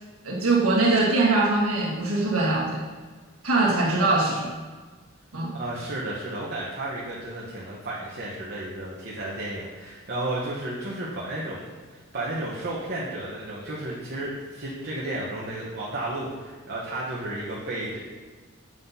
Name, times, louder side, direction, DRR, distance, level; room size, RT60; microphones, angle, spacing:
voice 1, 0.2-2.8 3.4-4.5 5.3-5.5, right 2 dB, 80° right, -3 dB, 1.4 m, -22 dB
voice 2, 5.5-11.6 11.9-18.0, right 1 dB, 45° right, -6 dB, 1.0 m, -33 dB
7.6 x 5.6 x 2.7 m, 1.4 s
head